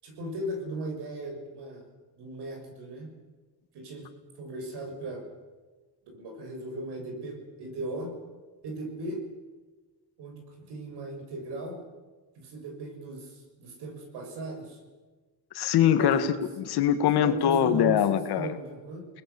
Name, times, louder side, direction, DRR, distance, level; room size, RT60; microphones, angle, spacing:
voice 1, 0.0-1.9 2.2-3.1 3.7-4.1 4.4-5.3 6.1-8.1 8.6-9.2 10.2-11.8 12.3-14.8 16.0-16.2 17.2-19.1, right 1 dB, 75° right, 3 dB, 6.8 m, -37 dB
voice 2, 15.6-16.3 16.6-18.5, left 9 dB, 75° left, 10 dB, 1.9 m, -23 dB
30.0 x 20.0 x 7.1 m, 1.3 s
cardioid pair, 175°, 40 cm